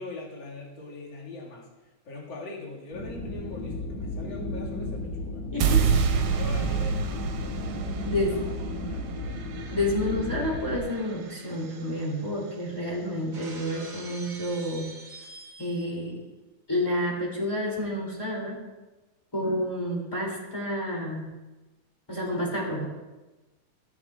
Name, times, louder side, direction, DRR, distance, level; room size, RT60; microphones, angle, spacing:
voice 1, 0.0-1.7 2.0-5.5 6.3-8.5 8.8-9.1, left 2 dB, 40° left, -3 dB, 2.3 m, -42 dB
sound 1, 2.9-10.8, left 2 dB, 70° left, 3.6 m, -34 dB
voice 2, 5.5-5.8 8.0-8.4 9.7-14.9 15.6-16.2 16.7-18.6 19.3-21.3 22.1-22.9, left 1 dB, 5° left, -5 dB, 2.5 m, -29 dB
sound 2, 5.6-11.8, right 6 dB, 80° right, 2.5 m, -29 dB
Shatter, 13.3-16.1, right 3 dB, 50° right, 1.0 m, -45 dB
17.0 x 8.6 x 2.4 m, 1.1 s
omnidirectional pair, 3.9 m